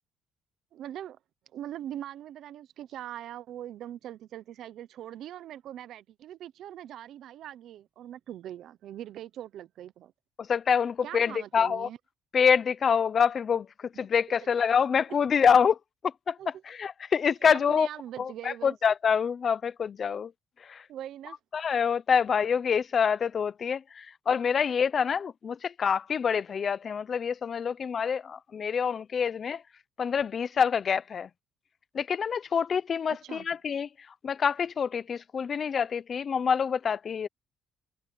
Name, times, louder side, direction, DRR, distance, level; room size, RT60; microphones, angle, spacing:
voice 1, 0.7-1.2 1.5-10.1 11.0-12.0 14.7-15.0 16.4-16.5 17.5-18.7 20.9-21.4 33.1-33.5, right 11 dB, 65° right, 0.9 m, -42 dB
voice 2, 10.4-11.9 12.3-15.8 16.0-17.9 18.2-20.3 20.6-20.8 21.5-29.6 30.0-31.3 31.9-33.9 34.2-37.3, left 7 dB, 40° left, 0.8 m, -26 dB
cardioid pair, 125°, 0 cm